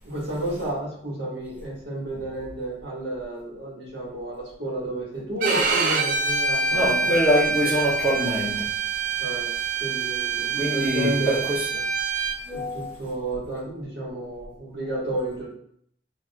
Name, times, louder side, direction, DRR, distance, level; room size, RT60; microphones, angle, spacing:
voice 1, 0.0-7.1 9.2-9.5 9.8-11.4 12.5-15.5, right 1 dB, 65° right, -5 dB, 1.7 m, -31 dB
Bowed string instrument, 5.4-12.4, right 4 dB, 45° right, 0.4 m, -25 dB
voice 2, 6.7-8.7 10.6-11.7 12.5-12.9, equal, 10° right, -7 dB, 0.8 m, -24 dB
6.1 x 2.5 x 2.3 m, 0.65 s
head